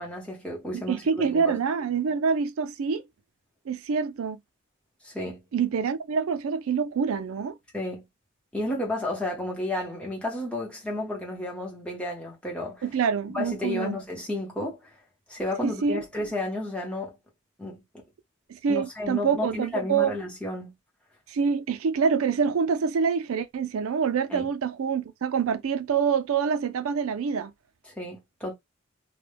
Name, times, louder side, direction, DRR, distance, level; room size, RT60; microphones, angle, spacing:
voice 1, 0.0-1.6 5.0-5.4 7.7-8.0 8.5-12.8 13.3-14.8 15.3-17.1 17.6-17.8 18.7-20.7 24.3-24.5 27.9-28.5, left 1 dB, 5° left, 0.8 m, -32 dB
voice 2, 0.7-3.0 3.7-4.4 5.5-7.6 12.8-14.0 15.6-16.0 18.5-20.1 21.3-27.5, right 6 dB, 85° right, 0.4 m, -26 dB
2.2 x 2.1 x 3.2 m
head